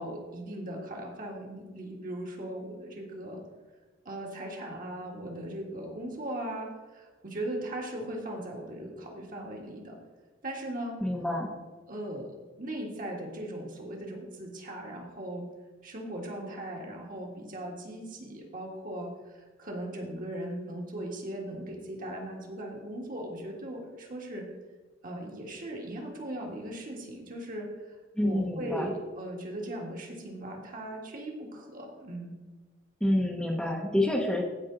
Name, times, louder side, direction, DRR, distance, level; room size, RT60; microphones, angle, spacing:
voice 1, 0.0-3.4 4.0-10.0 10.4-11.0 11.9-15.5 15.8-24.5 25.0-28.0 28.2-32.3, right 1 dB, 45° right, 0 dB, 1.7 m, -38 dB
voice 2, 11.0-11.5 28.2-28.9 33.0-34.4, left 1 dB, 5° left, 0 dB, 0.8 m, -28 dB
15.5 x 5.2 x 3.9 m, 1.3 s
head